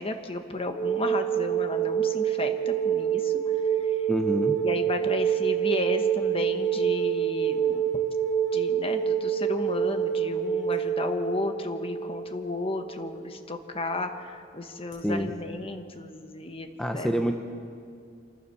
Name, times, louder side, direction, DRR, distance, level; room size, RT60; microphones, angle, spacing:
voice 1, 0.0-4.1 4.6-7.8 8.5-16.7 16.9-17.4, left 2 dB, 30° left, 6 dB, 1.3 m, -33 dB
sound 1, 0.7-13.2 14.9-15.0, right 8 dB, 70° left, 6.5 m, -27 dB
voice 2, 4.1-4.6 15.0-15.4 16.8-17.4, equal, 5° left, 3 dB, 0.9 m, -27 dB
27.5 x 14.5 x 7.1 m, 2.3 s
head